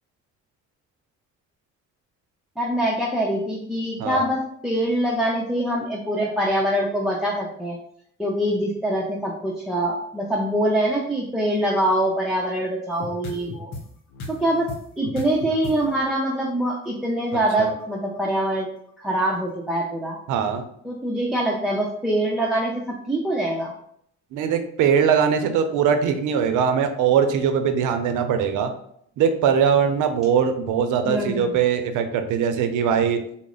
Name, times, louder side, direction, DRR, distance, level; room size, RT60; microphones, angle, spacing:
voice 1, 2.6-7.8 8.2-13.7 14.3-18.7 19.0-20.2 20.8-23.7 31.0-31.6, right 1 dB, ahead, -2 dB, 0.5 m, -24 dB
sound 1, 13.0-13.8 14.1-16.4 16.8-16.9 17.2-18.5, left 2 dB, 65° left, 0.8 m, -36 dB
voice 2, 20.3-20.6 24.3-28.7 29.2-33.2, right 7 dB, 85° right, 7 dB, 0.6 m, -21 dB
4.0 x 2.1 x 3.8 m, 0.69 s
cardioid pair, 90°, 30 cm